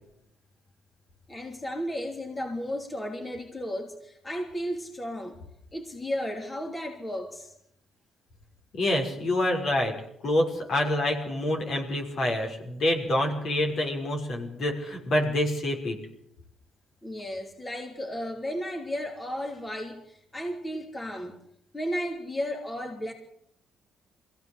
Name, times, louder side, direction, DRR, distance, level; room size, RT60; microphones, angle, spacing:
voice 1, 1.3-5.4 5.7-7.5 17.0-21.4 21.7-23.1, equal, 20° left, 3 dB, 3.2 m, -34 dB
voice 2, 8.7-9.9 10.2-16.0, left 1 dB, 60° left, 1 dB, 5.8 m, -27 dB
22.5 x 16.5 x 8.2 m, 0.75 s
cardioid pair, 90°, 0 cm